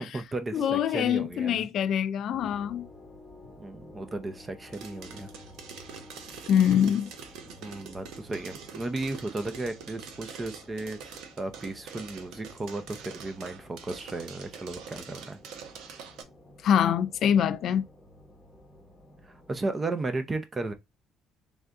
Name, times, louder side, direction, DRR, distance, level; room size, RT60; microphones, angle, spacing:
voice 1, 0.0-1.7 3.6-5.3 7.6-15.4 19.2-20.7, right 2 dB, 20° right, 0.6 m, -35 dB
voice 2, 0.5-2.9 6.5-7.1 16.6-17.9, left 9 dB, 55° left, 0.4 m, -24 dB
sound 1, 2.3-19.7, left 1 dB, 10° left, 1.0 m, -52 dB
sound 2, 4.7-16.2, right 6 dB, 80° right, 0.8 m, -45 dB
3.4 x 2.6 x 3.5 m
cardioid pair, 145°, 0 cm